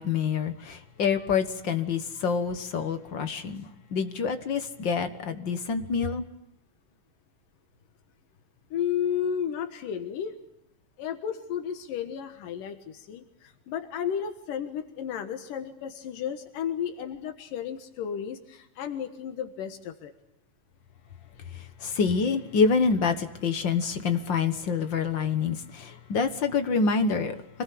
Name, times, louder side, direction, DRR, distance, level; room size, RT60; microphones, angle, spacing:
voice 1, 0.0-6.2 21.5-27.4, left 5 dB, 50° left, 1.4 m, -27 dB
voice 2, 8.7-10.4 11.0-20.1, left 8 dB, 85° left, 3.1 m, -33 dB
26.0 x 20.0 x 8.5 m
omnidirectional pair, 3.7 m